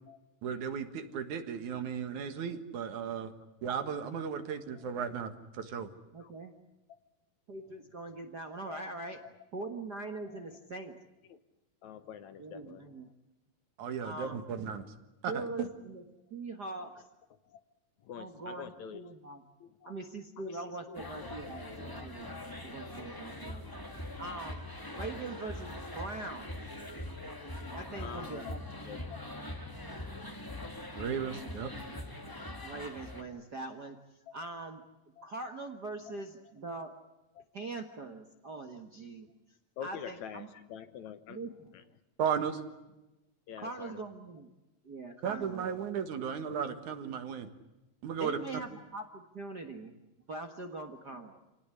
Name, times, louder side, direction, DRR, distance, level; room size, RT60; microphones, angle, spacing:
voice 1, 0.4-3.3 3.6-5.9 13.8-14.8 15.2-15.7 31.0-31.7 42.2-42.6 45.2-47.5 48.0-48.6, right 7 dB, 65° right, 9 dB, 3.0 m, -35 dB
voice 2, 6.1-6.5 7.5-9.2 9.5-11.0 12.4-13.1 14.0-14.4 15.3-16.0 16.3-17.1 18.2-19.4 19.8-22.3 22.6-23.7 24.2-24.6 24.9-26.6 27.7-28.6 32.6-34.9 35.2-37.0 37.5-40.5 41.3-41.7 43.6-44.5 44.8-45.6 48.2-50.0 50.3-51.4, right 3 dB, 45° right, 5 dB, 1.5 m, -42 dB
voice 3, 11.8-12.9 17.5-17.6 18.0-19.1 19.6-19.9 20.4-22.8 23.5-23.6 26.1-26.2 26.9-27.0 28.0-28.5 28.8-29.2 34.3-34.4 37.4-37.5 39.8-41.4 41.7-41.8 43.5-44.0, left 8 dB, 65° left, 11 dB, 2.3 m, -47 dB
sound 1, 20.9-33.2, left 1 dB, 10° left, 1.4 m, -42 dB
27.5 x 18.5 x 9.8 m, 1.0 s
omnidirectional pair, 3.8 m